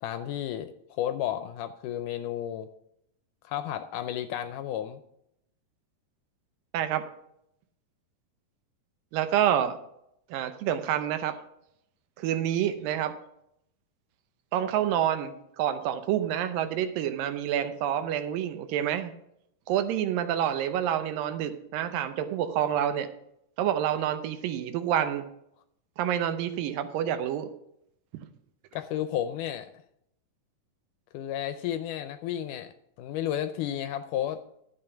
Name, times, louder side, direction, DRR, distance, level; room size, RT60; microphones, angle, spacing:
voice 1, 0.0-2.7 3.4-5.0 28.7-29.7 31.1-32.7 33.0-34.4, left 11 dB, 80° left, 10 dB, 1.9 m, -32 dB
voice 2, 6.7-7.0 9.1-9.8 10.3-11.4 12.2-13.2 14.5-19.1 19.7-23.1 23.6-25.2 26.0-27.5, right 10 dB, 80° right, 9 dB, 2.4 m, -28 dB
11.5 x 7.6 x 4.5 m, 0.76 s
omnidirectional pair, 4.0 m